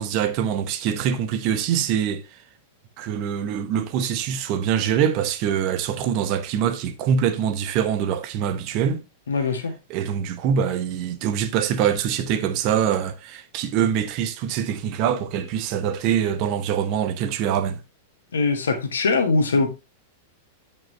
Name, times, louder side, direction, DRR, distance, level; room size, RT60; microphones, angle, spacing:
voice 1, 0.0-2.2 3.0-9.0 9.9-17.8, right 8 dB, 40° right, 0.9 m, -24 dB
voice 2, 9.3-9.7 18.3-19.7, left 4 dB, 70° left, 1.6 m, -21 dB
8.9 x 5.4 x 3.2 m
figure-of-eight pair, 95°, 0 cm